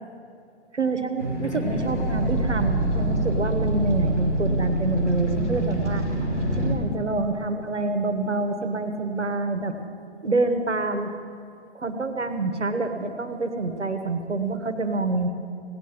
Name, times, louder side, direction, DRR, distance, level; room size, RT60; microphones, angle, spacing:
voice 1, 0.7-6.0 6.5-9.8 10.2-11.1 11.7-15.3, right 3 dB, 80° right, 6 dB, 1.6 m, -27 dB
sound 1, 1.2-6.8, right 1 dB, 85° left, 2.9 m, -25 dB
17.5 x 9.1 x 7.6 m, 2.5 s
figure-of-eight pair, 120°, 34 cm